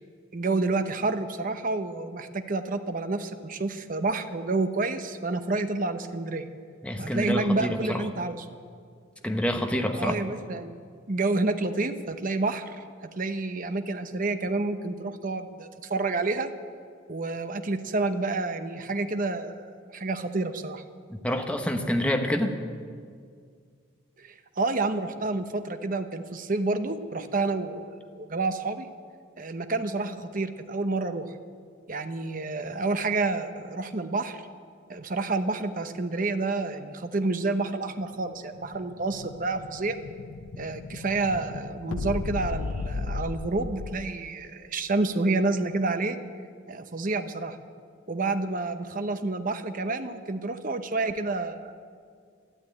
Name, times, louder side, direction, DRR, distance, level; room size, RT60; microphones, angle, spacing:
voice 1, 0.3-6.5 7.0-8.4 9.9-10.8 11.1-12.8 13.2-16.5 17.1-19.7 19.9-20.8 24.2-27.9 28.1-28.9 29.4-31.3 31.9-34.4 34.9-40.0 40.6-46.2 46.7-47.6 48.1-51.8, right 3 dB, 45° right, 8 dB, 0.9 m, -29 dB
voice 2, 6.8-8.0 9.2-10.2 21.1-22.5, equal, 5° left, 4 dB, 1.0 m, -27 dB
Explosion, 38.2-44.3, left 3 dB, 90° left, 0.5 m, -36 dB
13.0 x 12.5 x 8.8 m, 2.1 s
head